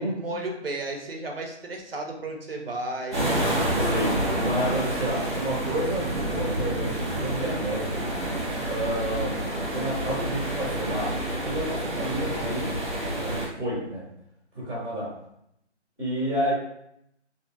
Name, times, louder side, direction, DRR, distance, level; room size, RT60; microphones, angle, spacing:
voice 1, 0.0-3.3 4.3-4.5, right 2 dB, 55° right, 2 dB, 0.6 m, -34 dB
sound 1, 3.1-13.4, right 1 dB, 25° right, 0.9 m, -28 dB
voice 2, 3.8-8.1 8.7-9.4 9.7-11.1 11.4-12.7 13.2-14.0 14.5-15.1 16.0-16.5, right 1 dB, 10° left, -19 dB, 0.9 m, -30 dB
2.8 x 2.6 x 2.3 m, 0.75 s
figure-of-eight pair, 170°, 35 cm